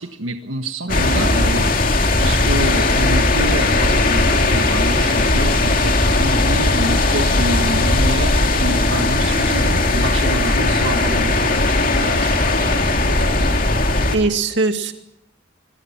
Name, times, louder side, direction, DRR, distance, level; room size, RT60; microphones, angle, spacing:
voice 1, 0.0-11.5 11.9-13.4, right 1 dB, 90° right, 6 dB, 1.5 m, -28 dB
sound 1, 0.9-14.2, left 2 dB, 45° left, 2.5 m, -17 dB
voice 2, 0.9-1.3 12.2-12.3 14.1-14.9, right 3 dB, 65° right, 6 dB, 2.3 m, -21 dB
26.5 x 21.5 x 5.9 m, 0.82 s
head